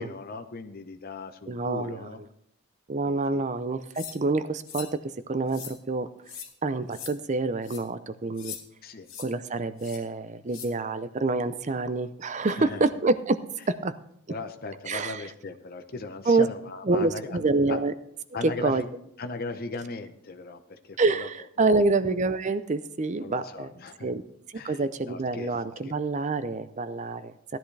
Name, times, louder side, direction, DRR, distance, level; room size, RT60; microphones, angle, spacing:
voice 1, 0.0-2.2 3.1-3.4 8.8-9.1 12.5-12.9 14.3-17.8 18.3-18.9 19.2-21.3 23.2-24.1 24.5-25.5 25.8-25.9, left 3 dB, 45° left, 6 dB, 0.7 m, -38 dB
voice 2, 1.5-2.0 2.9-5.0 5.3-6.1 6.6-8.5 9.2-13.9 14.9-15.2 16.3-16.5 16.9-17.9 18.4-18.8 21.0-23.7 24.0-24.2 24.6-27.6, right 3 dB, 35° right, 12 dB, 0.5 m, -27 dB
sound 1, 3.9-4.2 4.6-4.9 5.5-5.8 6.3-6.5 6.9-7.1 7.6-7.8 8.4-8.6 9.1-9.3 9.8-10.0 10.5-10.7, left 8 dB, 60° left, 2.3 m, -40 dB
16.0 x 10.5 x 3.3 m, 0.72 s
head